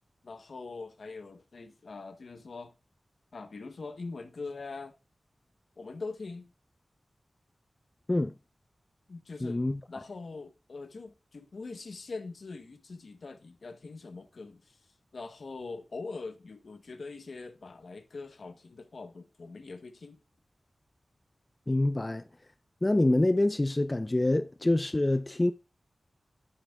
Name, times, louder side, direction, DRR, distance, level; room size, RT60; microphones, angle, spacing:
voice 1, 0.2-2.7 3.3-4.9 5.8-6.5 9.1-9.6 9.9-14.8 15.1-20.2, left 3 dB, 70° left, 0.9 m, -42 dB
voice 2, 9.4-9.8 21.7-22.2 22.8-25.5, left 1 dB, 25° left, 0.4 m, -26 dB
10.0 x 8.0 x 2.3 m
wide cardioid pair, 85°, 0 cm